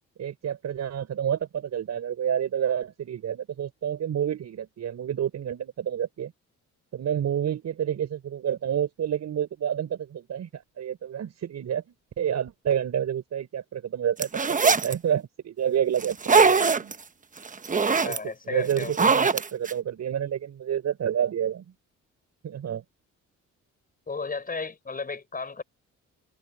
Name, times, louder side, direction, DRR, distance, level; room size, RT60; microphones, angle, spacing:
voice 1, 0.2-6.3 6.9-16.9 18.0-18.2 18.5-21.7 22.4-22.8, right 9 dB, 60° right, 6.3 m, -29 dB
sound 1, 14.2-14.9 16.0-16.9 17.4-18.2 18.7-19.7, right 5 dB, 25° right, 1.1 m, -21 dB
voice 2, 17.9-19.0 24.1-25.6, left 4 dB, 30° left, 6.2 m, -34 dB
cardioid pair, 90°, 30 cm